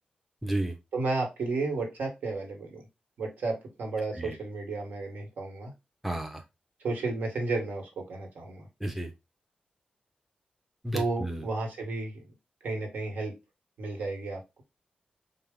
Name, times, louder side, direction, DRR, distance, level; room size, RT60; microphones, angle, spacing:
voice 1, 0.4-0.7 4.2-4.3 6.0-6.4 8.8-9.1 10.8-11.4, right 1 dB, 5° right, 3 dB, 0.5 m, -32 dB
voice 2, 0.9-2.8 3.2-5.7 6.8-8.7 10.9-12.2 12.6-13.3 13.8-14.6, right 3 dB, 75° right, 1 dB, 1.3 m, -32 dB
4.4 x 2.1 x 3.6 m, 0.24 s
wide cardioid pair, 150°, 3 cm